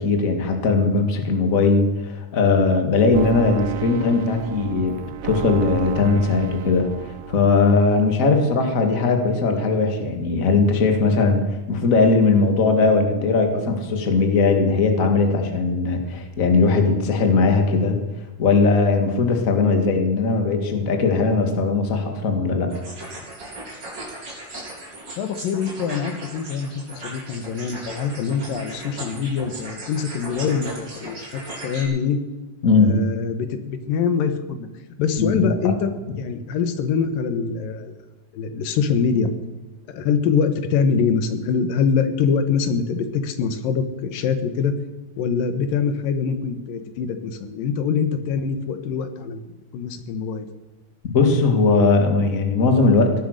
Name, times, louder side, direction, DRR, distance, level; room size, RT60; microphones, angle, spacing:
voice 1, 0.0-5.0 5.2-18.1 18.4-22.7 32.6-33.0 35.2-35.5 51.1-53.1, left 4 dB, 30° left, 5 dB, 1.7 m, -19 dB
sound 1, 3.1-8.0, right 13 dB, 70° right, 1.6 m, -32 dB
sound 2, 22.7-31.8, right 2 dB, 30° right, 4.5 m, -37 dB
voice 2, 25.2-32.2 32.8-34.7 35.0-38.0 38.3-39.3 39.9-44.7 45.2-50.5, left 6 dB, 85° left, 9 dB, 3.0 m, -24 dB
17.0 x 11.0 x 6.6 m, 1.1 s
omnidirectional pair, 3.8 m